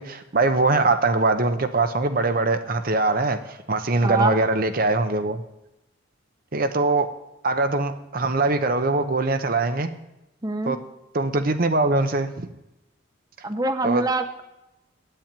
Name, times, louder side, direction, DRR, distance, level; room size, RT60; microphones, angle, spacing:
voice 1, 0.0-5.4 6.5-7.1 7.4-9.9 10.7-10.8 11.1-12.5 13.8-14.0, right 3 dB, 45° right, 9 dB, 0.8 m, -22 dB
voice 2, 4.0-4.4 10.4-10.8 13.4-14.4, right 2 dB, 20° right, 7 dB, 0.9 m, -25 dB
8.9 x 8.9 x 8.9 m, 0.93 s
head